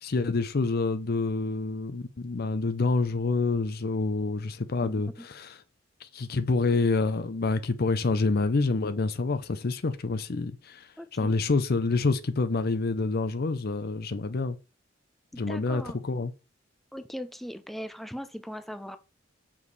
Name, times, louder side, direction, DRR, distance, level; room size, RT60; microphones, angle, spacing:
voice 1, 0.0-5.5 6.0-14.6 15.4-16.3, left 3 dB, 50° left, 0.6 m, -27 dB
voice 2, 4.8-5.3 11.0-11.3 15.5-16.0 16.9-19.0, equal, ahead, 0.6 m, -39 dB
7.1 x 4.9 x 4.0 m
head